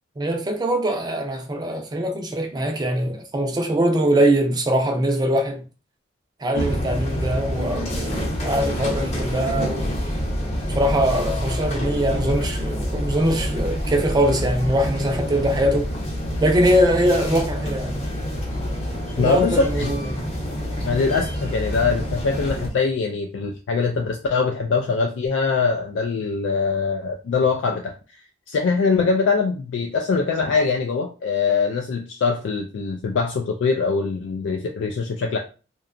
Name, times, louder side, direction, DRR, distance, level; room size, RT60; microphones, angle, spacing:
voice 1, 0.2-5.6 6.4-9.9 10.7-15.9 16.4-18.0 19.2-20.3, right 1 dB, 20° right, 0.4 m, -22 dB
sound 1, 6.5-22.7, equal, 35° left, 0.7 m, -27 dB
voice 2, 19.2-19.9 20.8-27.9 28.5-35.4, left 4 dB, 80° left, 0.3 m, -23 dB
2.8 x 2.2 x 2.5 m
head